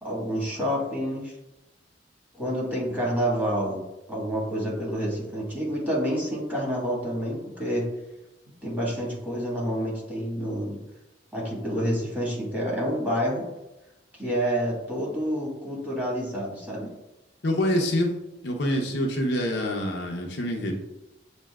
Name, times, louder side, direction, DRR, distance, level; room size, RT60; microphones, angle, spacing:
voice 1, 0.0-1.3 2.4-3.8 4.1-7.9 8.6-10.8 11.3-13.4 14.2-16.9, equal, 10° right, -6 dB, 1.5 m, -28 dB
voice 2, 17.4-18.1 18.4-20.7, left 1 dB, 65° left, 1 dB, 0.7 m, -26 dB
7.3 x 2.7 x 2.3 m, 0.98 s
head